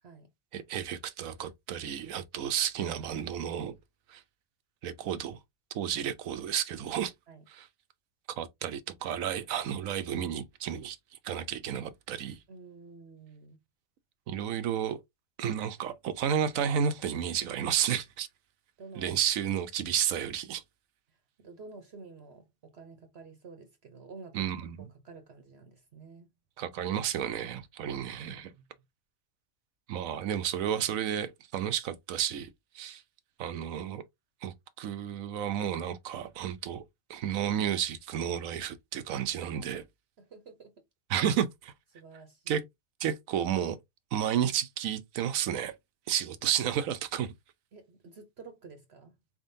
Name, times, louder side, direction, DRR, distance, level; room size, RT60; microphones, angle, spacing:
voice 1, 0.5-3.8 4.1-4.2 4.8-5.4 5.7-7.1 7.5-7.7 8.4-11.0 11.2-12.4 14.3-15.0 15.4-18.3 19.0-20.6 24.3-24.9 26.6-28.5 29.9-32.5 32.7-33.0 33.4-34.0 34.4-36.8 37.1-39.8 41.1-41.7 42.5-42.6 43.0-43.8 44.1-45.8 46.1-47.3, right 9 dB, 85° right, 1.1 m, -31 dB
voice 2, 2.8-3.2 5.9-6.1 7.3-7.5 12.5-13.6 18.8-19.2 21.4-26.3 28.1-28.6 39.4-39.8 40.2-40.8 41.9-42.7 47.7-49.2, right 4 dB, 55° right, 1.0 m, -50 dB
4.3 x 3.7 x 2.6 m
omnidirectional pair, 1.4 m